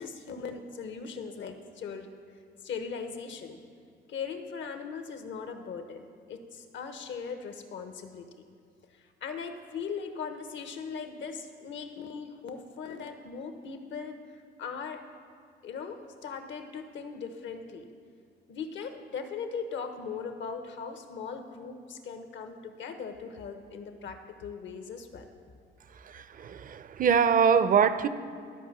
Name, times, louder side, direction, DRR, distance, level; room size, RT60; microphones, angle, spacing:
voice 1, 0.0-2.1 2.6-3.6 4.1-8.3 8.9-14.2 14.6-15.0 15.6-17.9 18.5-25.3, left 5 dB, 70° left, 7 dB, 1.1 m, -39 dB
voice 2, 25.9-28.1, right 7 dB, 45° right, 13 dB, 0.6 m, -24 dB
13.0 x 5.3 x 7.4 m, 2.3 s
cardioid pair, 90°, 20 cm